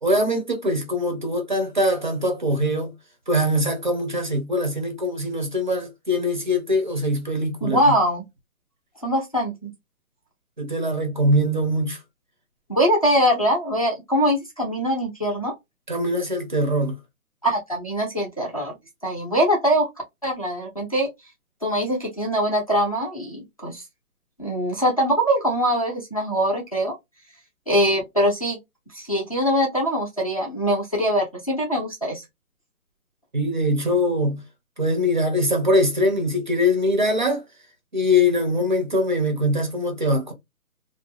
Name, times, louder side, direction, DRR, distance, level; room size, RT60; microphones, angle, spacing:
voice 1, 0.0-2.9 3.3-7.8 10.6-12.0 15.9-17.0 33.3-34.4 34.8-37.4 37.9-40.3, left 1 dB, 35° right, 0.6 m, -22 dB
voice 2, 7.6-8.3 9.0-9.7 12.7-15.5 17.4-18.7 19.0-19.9 20.2-21.1 21.6-23.8 24.4-26.9 27.7-28.6 28.9-32.2, equal, 25° left, 0.5 m, -22 dB
2.5 x 2.0 x 3.1 m
hypercardioid pair, 155°, 44 cm